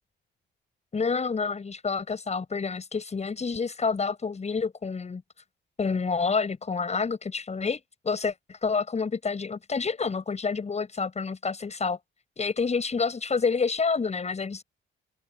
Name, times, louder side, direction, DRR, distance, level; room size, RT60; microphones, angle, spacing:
voice 1, 0.9-5.2 5.8-7.8 8.0-12.0 12.4-14.6, left 5 dB, 35° left, 7.4 m, -28 dB
open air
cardioid pair, 90°, 20 cm